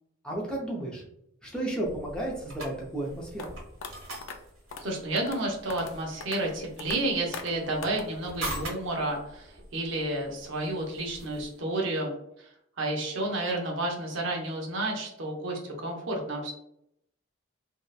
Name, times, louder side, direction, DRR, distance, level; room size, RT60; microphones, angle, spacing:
voice 1, 0.2-1.0 1.4-3.6, right 1 dB, 5° left, -4 dB, 0.5 m, -33 dB
sound 1, 1.8-11.6, right 1 dB, 85° right, 1.1 m, -43 dB
sound 2, 3.4-3.5 3.8-3.9 4.2-4.4 4.7-4.9 5.2-5.4 5.7-5.9 6.2-6.4 6.8-7.0 7.3-7.5 7.8-8.0, left 5 dB, 65° left, 0.3 m, -39 dB
voice 2, 4.8-12.1 12.4-12.5 12.8-16.5, right 2 dB, 65° right, 0 dB, 0.6 m, -31 dB
2.7 x 2.0 x 2.3 m, 0.76 s
head